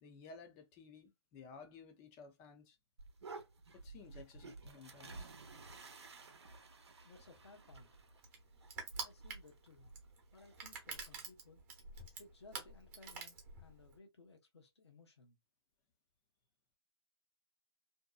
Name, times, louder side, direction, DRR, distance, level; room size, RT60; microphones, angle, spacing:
voice 1, 0.0-2.8 3.7-5.3, left 4 dB, 20° left, 0.5 m, -56 dB
sound 1, 3.0-11.2, right 3 dB, 75° right, 0.7 m, -54 dB
voice 2, 7.0-7.9 9.0-9.9 10.3-11.6 12.2-15.4, left 3 dB, 75° left, 0.9 m, -60 dB
Crushing, 7.2-14.0, right 5 dB, 30° right, 0.9 m, -48 dB
2.7 x 2.1 x 2.3 m
hypercardioid pair, 145°, 14 cm